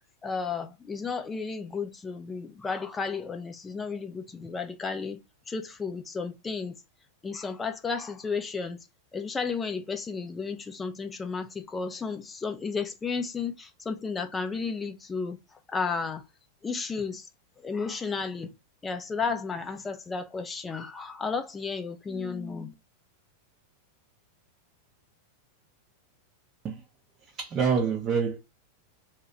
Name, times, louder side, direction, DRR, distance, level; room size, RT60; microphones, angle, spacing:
voice 1, 0.2-6.8 7.2-8.9 9.1-16.3 16.6-17.3 17.6-18.5 18.8-22.7, left 5 dB, 15° left, 0.5 m, -33 dB
voice 2, 27.2-28.4, right 6 dB, 30° right, 0.6 m, -27 dB
2.8 x 2.3 x 4.2 m
figure-of-eight pair, 90°, 0 cm